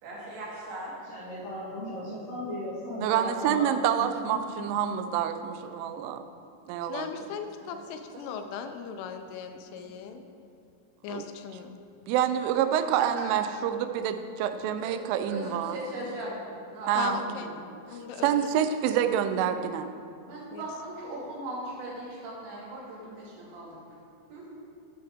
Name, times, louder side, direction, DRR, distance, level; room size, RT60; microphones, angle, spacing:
voice 1, 0.0-0.9 7.6-7.8 8.1-8.3 9.7-9.9 13.1-13.3 14.8-15.0 15.2-16.4 16.7-17.6 20.3-23.8 24.3-24.5, right 1 dB, 70° right, -5 dB, 4.2 m, -39 dB
voice 2, 0.8-3.7 4.0-4.1, left 1 dB, 50° left, -12 dB, 3.7 m, -36 dB
voice 3, 3.0-6.2 6.7-7.1 11.1-11.2 12.1-15.8 16.9-17.2 18.2-19.9, right 9 dB, 85° right, 9 dB, 3.1 m, -27 dB
voice 4, 6.9-10.2 11.0-11.8 17.0-17.5 17.9-18.4 20.5-20.6, left 6 dB, 85° left, 6 dB, 3.1 m, -37 dB
12.0 x 8.7 x 3.5 m, 2.5 s
omnidirectional pair, 5.5 m